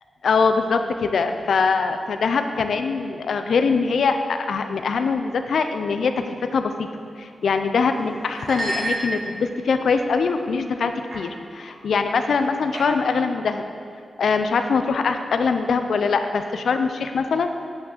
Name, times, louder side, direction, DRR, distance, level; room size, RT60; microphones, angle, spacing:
voice 1, 0.2-6.9 7.2-13.6 14.2-17.5, left 5 dB, 80° left, 7 dB, 0.7 m, -22 dB
sound 1, 7.4-7.7 8.3-9.6 10.2-10.5 11.1-11.3 11.6-11.8 12.7-13.2, right 1 dB, 55° right, 2.5 m, -30 dB
8.7 x 6.1 x 7.3 m, 2.5 s
wide cardioid pair, 155°, 0 cm